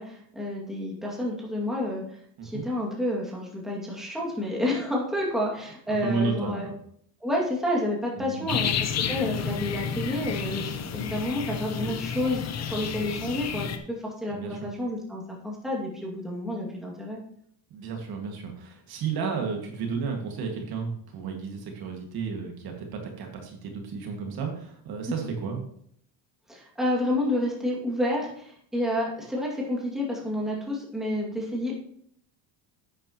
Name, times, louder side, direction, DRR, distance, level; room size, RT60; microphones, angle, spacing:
voice 1, 0.0-2.2 2.4-6.7 7.2-10.6 10.9-17.2 26.5-31.7, left 1 dB, ahead, -4 dB, 2.3 m, -29 dB
voice 2, 5.9-6.8 8.2-8.6 14.3-14.7 17.7-25.6, right 5 dB, 55° right, 2 dB, 2.1 m, -32 dB
sound 1, 8.5-13.8, left 7 dB, 35° left, 0.8 m, -31 dB
11.0 x 9.0 x 3.0 m, 0.66 s
cardioid pair, 155°, 45 cm